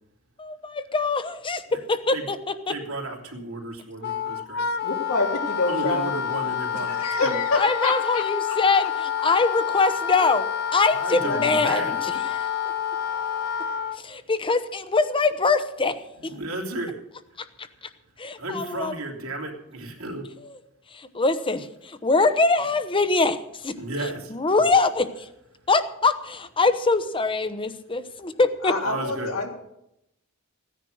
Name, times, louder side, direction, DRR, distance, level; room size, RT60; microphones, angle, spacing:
voice 1, 0.4-2.4 2.7-2.8 7.6-10.4 10.7-12.5 14.0-15.9 18.2-18.9 20.9-23.7 24.3-25.3 25.7-28.7, left 3 dB, 25° left, 11 dB, 0.9 m, -23 dB
voice 2, 2.7-4.7 5.7-7.4 10.9-12.1 16.2-17.0 18.4-20.2 23.8-24.6 28.8-29.5, right 2 dB, 75° right, 0 dB, 3.0 m, -33 dB
Wind instrument woodwind instrument, 4.0-14.0, left 8 dB, 50° left, 0.7 m, -28 dB
voice 3, 4.8-6.1 6.4-6.5 6.9-8.6 10.2-10.3 11.2-12.0 28.6-29.5, left 3 dB, 85° left, 0 dB, 3.3 m, -27 dB
15.5 x 10.0 x 6.3 m, 0.82 s
head